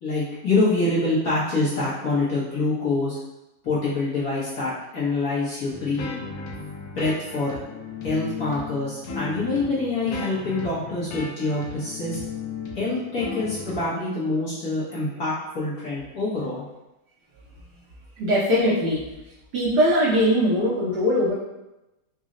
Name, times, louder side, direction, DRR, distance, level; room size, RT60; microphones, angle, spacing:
voice 1, 0.0-3.2 3.6-6.1 6.8-7.6 8.0-12.2 12.7-16.6, left 2 dB, 55° left, -9 dB, 1.1 m, -25 dB
sound 1, 5.7-13.8, left 5 dB, 75° left, 1.4 m, -36 dB
voice 2, 18.2-19.0 19.5-21.3, equal, 60° right, -7 dB, 1.2 m, -20 dB
4.1 x 2.0 x 3.7 m, 0.96 s
omnidirectional pair, 2.3 m